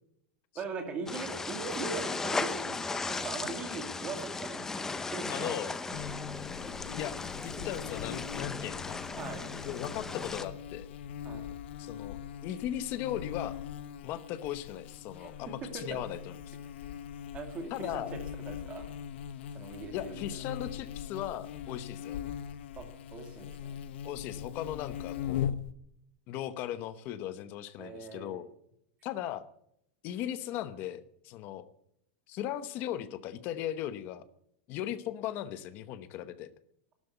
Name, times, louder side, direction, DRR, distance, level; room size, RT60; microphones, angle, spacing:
voice 1, 0.5-5.5 5.9-6.0 9.2-9.5 11.2-11.5 15.2-15.3 15.7-15.8 17.3-18.1 18.5-18.9 19.5-20.2 22.8-22.9 23.1-23.8 27.8-28.5, right 4 dB, 20° right, 5 dB, 2.4 m, -40 dB
sound 1, 1.1-10.5, left 4 dB, 5° left, 0.6 m, -37 dB
voice 2, 5.3-5.7 6.9-7.2 7.4-9.0 9.6-10.9 11.8-13.6 14.0-16.6 17.7-18.2 19.9-22.2 24.0-25.5 26.3-28.5 29.0-29.5 30.0-31.6 32.3-34.2 34.7-36.5, left 12 dB, 30° left, 13 dB, 0.9 m, -37 dB
Buzz, 5.9-25.7, left 9 dB, 65° left, 1.1 m, -41 dB
12.5 x 12.0 x 9.4 m, 0.75 s
supercardioid pair, 180°, 6 cm